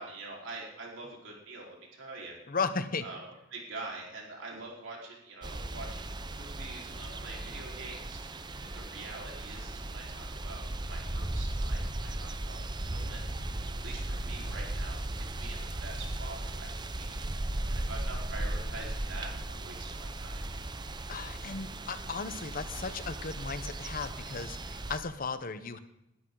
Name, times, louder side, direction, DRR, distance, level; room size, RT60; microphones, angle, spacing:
voice 1, 0.0-2.4 3.0-6.1 6.4-8.2 8.7-13.2 13.8-15.0 15.4-16.7 17.0-17.2 17.7-20.4, right 3 dB, 75° right, -2 dB, 4.4 m, -45 dB
voice 2, 2.5-3.0 21.1-25.8, left 4 dB, 45° left, 11 dB, 0.9 m, -35 dB
sound 1, 5.4-25.0, right 1 dB, 25° right, 0.7 m, -37 dB
sound 2, 12.7-17.6, right 1 dB, 70° left, 5.1 m, -54 dB
20.5 x 12.5 x 3.9 m, 0.85 s
head